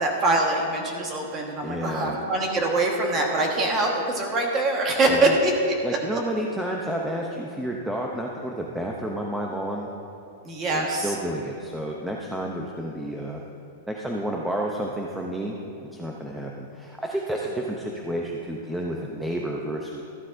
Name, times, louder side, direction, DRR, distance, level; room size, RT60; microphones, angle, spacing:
voice 1, 0.0-5.5 6.1-6.2 10.4-11.1, right 2 dB, 20° right, 0 dB, 1.3 m, -24 dB
voice 2, 1.6-2.2 5.1-5.4 5.8-9.9 10.7-13.4 13.9-20.0, right 1 dB, 5° right, -1 dB, 0.5 m, -30 dB
13.5 x 11.0 x 2.5 m, 2.7 s
supercardioid pair, 170°, 0 cm